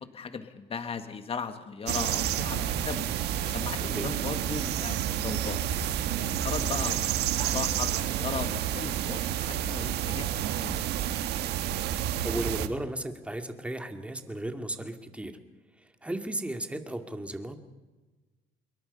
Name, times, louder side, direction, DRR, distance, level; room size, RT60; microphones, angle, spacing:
voice 1, 0.0-3.1 3.4-5.6 6.4-10.8, left 5 dB, 35° left, 8 dB, 1.8 m, -37 dB
sound 1, 1.9-12.7, right 10 dB, 80° right, 1.5 m, -30 dB
voice 2, 12.2-15.3 15.8-17.6, right 1 dB, 5° right, 6 dB, 2.4 m, -35 dB
26.5 x 22.5 x 5.5 m, 1.2 s
cardioid pair, 110°, 17 cm